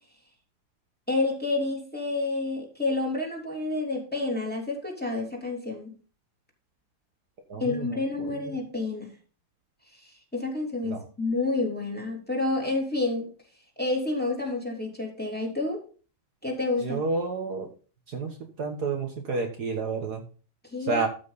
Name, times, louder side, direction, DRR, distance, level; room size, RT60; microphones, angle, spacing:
voice 1, 1.1-5.9 7.6-9.1 9.9-13.3 13.8-15.8 16.4-17.0 20.7-21.1, left 2 dB, 5° left, -1 dB, 3.2 m, -29 dB
voice 2, 7.5-7.9 8.2-8.6 10.8-11.0 16.8-17.7 18.1-18.3 18.6-20.2 20.9-21.1, right 4 dB, 60° right, 3 dB, 1.9 m, -30 dB
13.0 x 6.0 x 4.1 m, 0.37 s
omnidirectional pair, 2.1 m